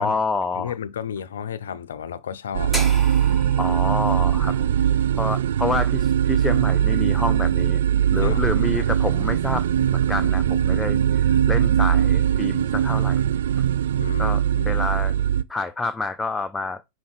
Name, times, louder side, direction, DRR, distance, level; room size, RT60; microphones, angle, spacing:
voice 1, 0.0-0.7 3.6-4.6 5.2-7.8 8.1-9.6 9.9-13.2 14.2-15.1 15.5-16.8, left 3 dB, 10° left, 0.4 m, -28 dB
voice 2, 0.5-2.9 4.4-4.5 8.2-8.5 14.0-14.7, left 8 dB, 70° left, 0.5 m, -32 dB
sound 1, 2.5-15.4, right 10 dB, 65° right, 0.3 m, -21 dB
sound 2, 2.7-6.8, equal, 5° right, 1.3 m, -36 dB
5.4 x 4.2 x 4.6 m
figure-of-eight pair, 100°, 0 cm